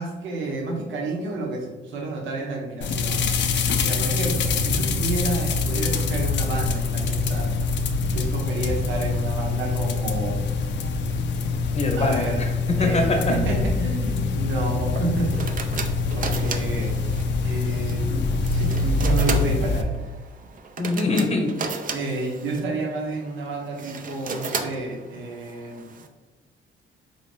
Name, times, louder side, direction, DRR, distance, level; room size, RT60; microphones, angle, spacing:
voice 1, 0.0-3.2 3.8-7.5 8.1-10.4 11.9-12.4 12.8-15.3 16.1-16.9 17.4-18.2 18.5-20.1 21.9-25.9, right 2 dB, 75° right, 0 dB, 0.9 m, -30 dB
sound 1, 2.8-19.8, left 4 dB, 65° left, 0.5 m, -24 dB
voice 2, 11.7-13.3 20.8-21.6, left 2 dB, 30° left, 3 dB, 0.7 m, -23 dB
sound 2, 14.9-26.1, right 4 dB, 40° right, 0.5 m, -35 dB
4.0 x 2.7 x 3.3 m, 1.3 s
cardioid pair, 90°, 20 cm